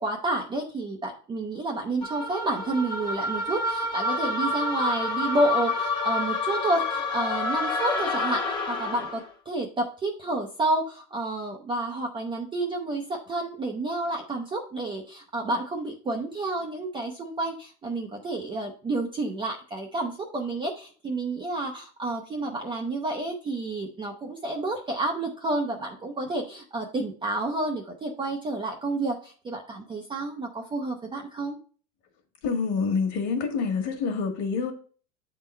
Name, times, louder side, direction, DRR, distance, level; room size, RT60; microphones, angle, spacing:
voice 1, 0.0-31.6, right 2 dB, 15° right, 1 dB, 0.4 m, -30 dB
sound 1, 2.0-9.3, left 3 dB, 10° left, 0.8 m, -28 dB
voice 2, 32.4-34.7, left 5 dB, 45° left, 5 dB, 1.4 m, -27 dB
7.9 x 3.8 x 4.2 m, 0.41 s
supercardioid pair, 145°, 40 cm